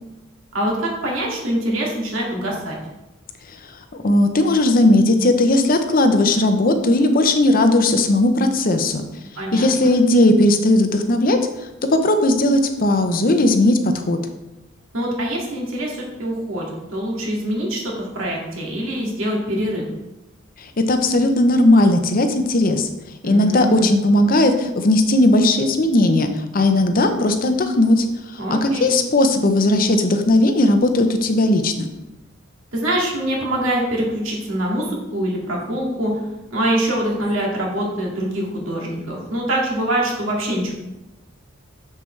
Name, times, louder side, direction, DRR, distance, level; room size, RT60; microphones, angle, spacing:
voice 1, 0.5-2.8 9.4-10.0 14.9-19.9 23.2-23.9 28.4-28.9 32.7-36.1 36.5-40.7, right 1 dB, 75° right, -3 dB, 2.1 m, -24 dB
voice 2, 4.0-9.0 9.5-11.4 11.9-14.2 20.6-22.9 23.2-28.0 28.3-31.9, left 1 dB, 45° left, 7 dB, 0.6 m, -17 dB
7.0 x 6.7 x 3.2 m, 0.98 s
head